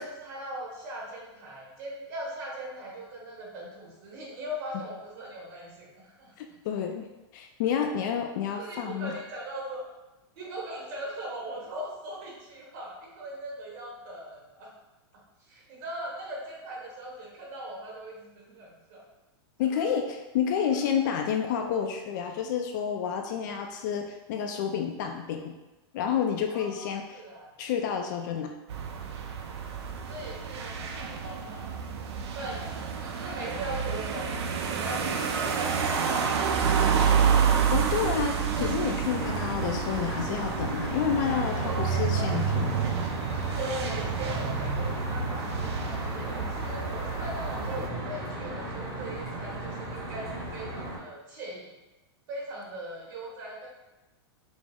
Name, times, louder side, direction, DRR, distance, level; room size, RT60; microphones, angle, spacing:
voice 1, 0.0-6.3 8.5-9.8 10.3-14.7 15.5-19.1 19.6-19.9 20.7-20.8 26.5-27.5 30.1-31.8 32.3-37.6 41.6-42.4 43.6-51.7 52.3-53.7, right 1 dB, 45° right, -4 dB, 1.4 m, -40 dB
voice 2, 6.4-7.1 7.3-9.1 19.6-20.1 20.3-25.5 25.9-27.2 27.6-28.5 37.7-42.7, left 8 dB, 45° left, 4 dB, 0.4 m, -29 dB
sound 1, 28.7-47.9, right 6 dB, 80° right, 0.5 m, -29 dB
Traffic noise roadway noise, 38.5-51.0, right 1 dB, 20° right, 1.0 m, -36 dB
5.1 x 2.0 x 3.5 m, 1.0 s
supercardioid pair, 165°, 14 cm